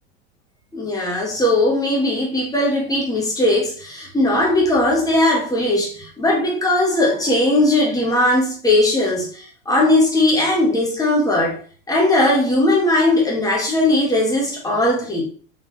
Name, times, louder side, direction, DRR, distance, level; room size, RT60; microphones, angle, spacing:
voice 1, 0.7-11.6 11.9-15.2, left 1 dB, 10° left, 1.4 m, -18 dB
4.0 x 3.2 x 3.2 m
hypercardioid pair, 85°, 39 cm